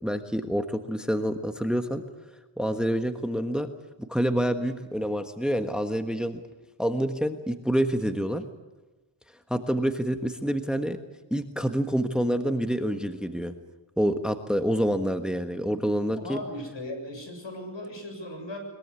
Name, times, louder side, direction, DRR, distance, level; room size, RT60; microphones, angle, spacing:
voice 1, 0.0-2.0 2.6-3.7 4.0-6.4 6.8-8.4 9.5-11.0 11.3-13.5 14.0-16.4, equal, ahead, 7 dB, 1.4 m, -27 dB
voice 2, 16.1-18.6, left 1 dB, 65° left, 5 dB, 7.1 m, -37 dB
22.0 x 22.0 x 8.3 m, 1.2 s
wide cardioid pair, 100°, 47 cm